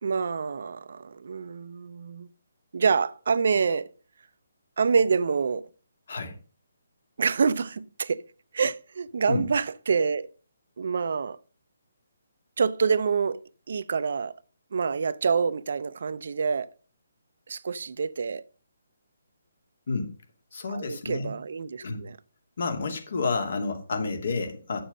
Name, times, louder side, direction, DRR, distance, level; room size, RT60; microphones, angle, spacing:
voice 1, 0.0-2.3 2.7-3.9 4.8-5.7 7.2-8.2 8.5-10.3 10.8-11.4 12.6-13.4 13.7-14.4 14.7-16.7 17.5-18.4 20.7-22.2, right 5 dB, 60° right, 0.5 m, -26 dB
voice 2, 20.5-21.3 21.8-22.0 22.6-24.8, left 4 dB, 60° left, 2.5 m, -30 dB
8.6 x 7.0 x 5.3 m
hypercardioid pair, 150°, 0 cm